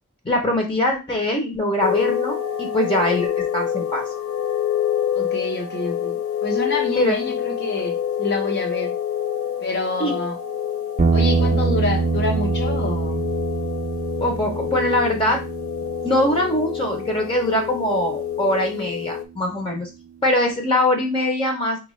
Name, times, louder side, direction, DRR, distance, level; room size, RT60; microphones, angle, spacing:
voice 1, 0.2-4.0 7.0-7.2 10.0-10.1 14.2-15.4 16.0-19.9 20.2-21.8, left 1 dB, 25° left, 0.8 m, -22 dB
sound 1, 1.8-19.3, left 10 dB, 75° left, 0.5 m, -27 dB
voice 2, 5.1-8.9 9.6-10.4 11.1-13.3, left 2 dB, 50° left, 0.9 m, -27 dB
sound 2, 11.0-19.3, right 4 dB, 35° right, 0.5 m, -25 dB
4.4 x 2.5 x 3.1 m
head